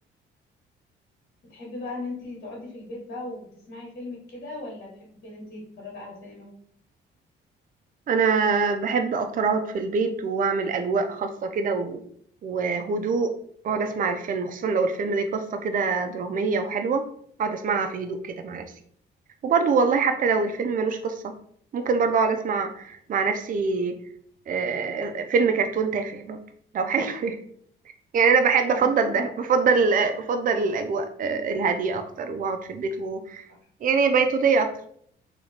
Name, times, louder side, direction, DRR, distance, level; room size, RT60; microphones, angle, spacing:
voice 1, 1.5-6.5 28.7-29.3, left 2 dB, 50° left, -3 dB, 1.7 m, -38 dB
voice 2, 8.1-12.0 12.4-13.3 13.6-17.0 17.4-18.7 19.4-21.3 21.7-24.0 24.5-26.4 26.7-27.4 28.1-33.4 33.8-34.7, right 5 dB, 45° right, 7 dB, 0.5 m, -24 dB
3.0 x 2.8 x 4.2 m, 0.62 s
cardioid pair, 90°, 20 cm